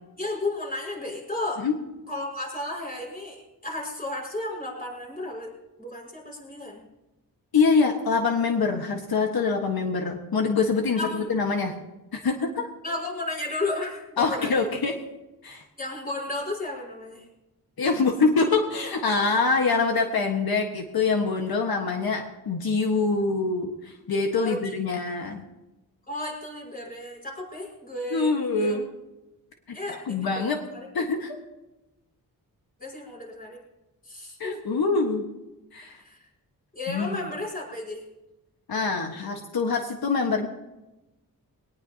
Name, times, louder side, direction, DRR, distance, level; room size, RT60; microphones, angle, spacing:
voice 1, 0.2-1.7 2.1-5.5 5.8-6.8 11.0-11.3 12.8-14.7 15.8-17.3 24.3-24.7 26.1-28.8 29.7-30.5 30.7-30.9 32.8-33.6 34.0-34.6 36.0-36.2 36.7-38.0, left 2 dB, 25° left, -2 dB, 5.7 m, -33 dB
voice 2, 7.5-11.8 12.1-12.7 14.2-15.0 15.4-15.6 17.8-25.4 28.1-28.9 29.7-29.8 30.1-30.6 30.9-31.4 34.4-35.2 35.7-36.0 36.9-37.2 38.7-40.5, left 4 dB, 80° left, 3 dB, 1.6 m, -25 dB
21.5 x 19.0 x 2.9 m, 1.0 s
wide cardioid pair, 150°, 36 cm